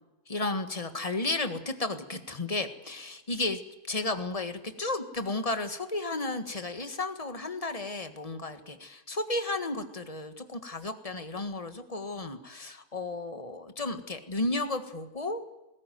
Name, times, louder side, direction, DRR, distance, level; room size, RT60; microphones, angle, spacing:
voice 1, 0.3-3.6 3.9-15.4, left 2 dB, 25° left, 9 dB, 1.6 m, -33 dB
19.5 x 17.0 x 9.4 m, 1.0 s
omnidirectional pair, 1.7 m